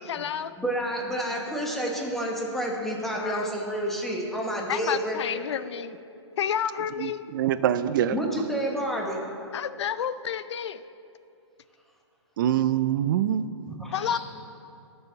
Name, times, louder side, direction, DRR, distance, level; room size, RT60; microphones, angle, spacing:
voice 1, 0.0-0.6 3.2-3.6 4.7-5.9 6.4-7.2 9.5-10.8 13.9-14.2, left 9 dB, 70° left, 14 dB, 0.5 m, -30 dB
voice 2, 0.6-5.5 8.1-9.2 13.7-14.2, equal, ahead, -2 dB, 1.2 m, -30 dB
voice 3, 7.0-8.1 12.4-13.4, right 11 dB, 45° right, 13 dB, 0.5 m, -24 dB
18.5 x 6.9 x 4.0 m, 2.7 s
hypercardioid pair, 150°, 15 cm